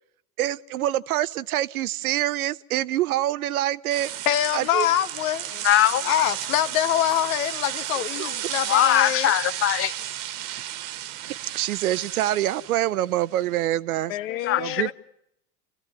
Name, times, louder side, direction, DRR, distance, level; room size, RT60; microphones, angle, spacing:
voice 1, 0.4-4.1 4.5-4.9 11.2-14.1 14.6-14.9, right 13 dB, 70° right, 0.9 m, -25 dB
sound 1, 3.9-13.6, right 12 dB, 45° right, 1.5 m, -33 dB
voice 2, 4.2-5.5 6.0-9.3 14.1-14.9, left 12 dB, 65° left, 1.3 m, -25 dB
voice 3, 5.6-6.1 8.2-8.3 8.7-9.9 14.3-14.9, left 12 dB, 30° left, 0.9 m, -21 dB
29.5 x 16.0 x 9.4 m
hypercardioid pair, 100°, 45 cm